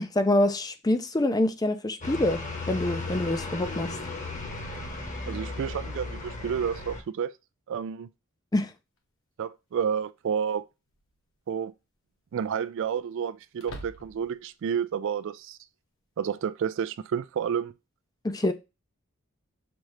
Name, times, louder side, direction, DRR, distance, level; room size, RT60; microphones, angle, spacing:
voice 1, 0.0-2.4 2.7-3.9 8.5-8.7 18.2-18.5, left 1 dB, 15° left, 0.4 m, -25 dB
sound 1, 2.0-7.0, left 3 dB, 35° left, 1.1 m, -35 dB
voice 2, 5.3-7.3 7.7-8.1 9.4-10.6 11.5-11.7 12.3-15.6 16.2-17.7, right 7 dB, 60° right, 0.3 m, -30 dB
sound 2, 9.0-9.1 10.9-11.3 11.7-11.8 13.5-14.4, right 1 dB, 60° left, 1.1 m, -44 dB
6.0 x 2.7 x 3.2 m
head